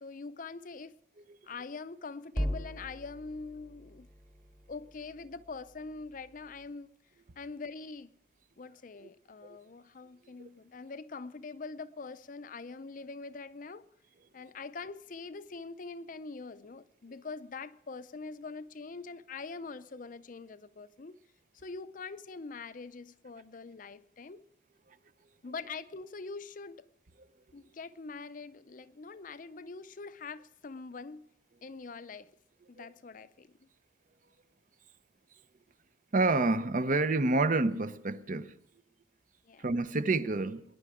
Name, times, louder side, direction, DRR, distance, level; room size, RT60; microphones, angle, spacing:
voice 1, 0.0-0.9 1.4-4.1 4.7-6.9 7.4-8.1 8.6-13.8 14.3-21.2 21.5-24.4 25.4-26.9 27.5-31.2 31.6-32.3 32.7-33.6 39.4-39.7, left 4 dB, 45° left, 0.5 m, -44 dB
sound 1, 2.3-6.7, equal, 25° right, 1.5 m, -40 dB
voice 2, 36.1-38.6 39.6-40.6, right 3 dB, 45° right, 0.6 m, -28 dB
20.0 x 10.5 x 4.9 m
head